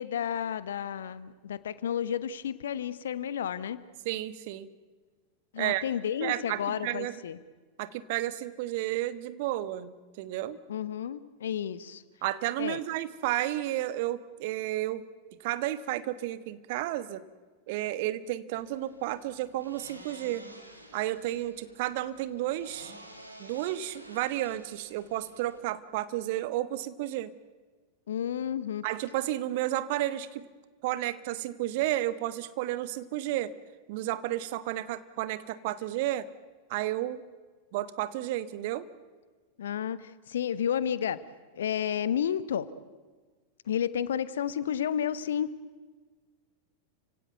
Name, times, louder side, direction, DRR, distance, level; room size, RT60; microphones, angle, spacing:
voice 1, 0.0-3.8 5.5-7.4 10.7-12.0 12.6-12.8 28.1-28.8 39.6-41.2 41.5-42.7 43.7-45.5, left 9 dB, 65° left, 17 dB, 1.1 m, -31 dB
voice 2, 4.0-4.7 5.6-5.8 6.2-7.1 7.8-10.6 12.2-15.0 15.4-17.2 17.7-20.5 20.9-22.9 23.4-27.3 28.8-30.4 30.8-33.5 33.9-36.3 36.7-37.2 37.7-38.9, right 14 dB, 50° right, 15 dB, 1.3 m, -32 dB
sound 1, 18.5-25.6, right 1 dB, 85° right, 3.0 m, -51 dB
29.5 x 17.0 x 9.2 m, 1.4 s
figure-of-eight pair, 90°, 0 cm